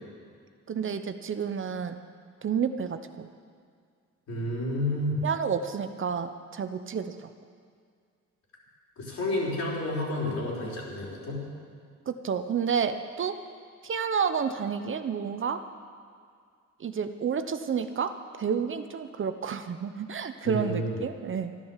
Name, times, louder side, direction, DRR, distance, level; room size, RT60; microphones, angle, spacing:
voice 1, 0.7-2.0 2.4-3.3 5.2-7.3 12.1-13.4 13.8-15.6 16.8-21.5, right 6 dB, 40° right, 9 dB, 0.8 m, -30 dB
voice 2, 4.3-5.2 9.0-11.5 20.4-21.0, left 1 dB, 65° left, -4 dB, 4.8 m, -30 dB
12.5 x 11.5 x 7.3 m, 2.1 s
cardioid pair, 90°, 30 cm